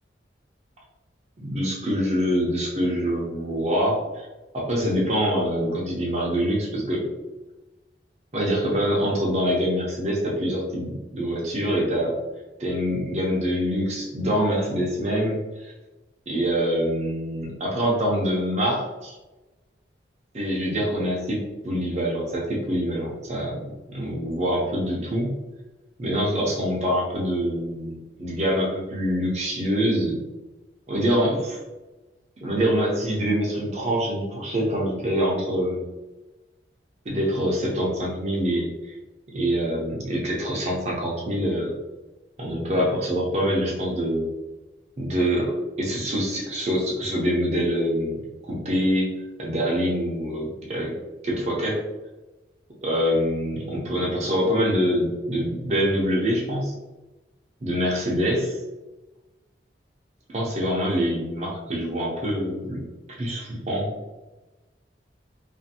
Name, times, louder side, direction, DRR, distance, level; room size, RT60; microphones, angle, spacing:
voice 1, 1.4-4.3 4.5-7.0 8.3-12.2 12.6-15.7 16.3-19.1 20.3-23.7 23.9-25.3 26.0-30.2 30.9-31.6 32.4-35.8 37.1-38.7 39.3-41.7 42.4-44.3 45.0-49.1 49.4-51.0 51.2-51.8 52.8-56.7 57.6-58.6 60.3-62.8 63.2-64.2, equal, 35° right, -4 dB, 0.5 m, -25 dB
2.5 x 2.4 x 2.7 m, 1.1 s
head